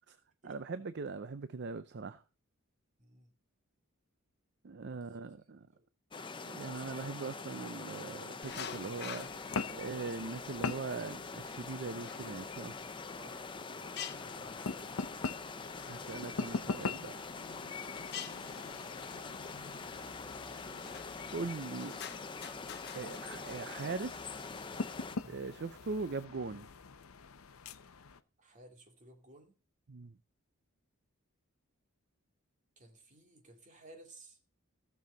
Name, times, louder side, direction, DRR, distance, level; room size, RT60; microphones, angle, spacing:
voice 1, 0.4-2.2 4.6-5.7 6.4-9.4 9.7-12.8 15.9-17.2 21.3-22.0 22.9-24.4 25.3-26.7 29.9-30.1, right 4 dB, 50° right, 0.6 m, -41 dB
voice 2, 3.0-3.3 4.8-5.0 5.6-5.9 13.1-14.9 25.2-25.4 28.4-29.6 32.8-34.4, right 2 dB, 35° right, 2.5 m, -58 dB
sound 1, 6.1-25.2, left 4 dB, 25° left, 0.7 m, -44 dB
sound 2, 8.4-26.2, left 8 dB, 50° left, 1.0 m, -51 dB
sound 3, 9.1-28.2, left 4 dB, 80° left, 0.7 m, -44 dB
15.5 x 7.0 x 3.9 m
head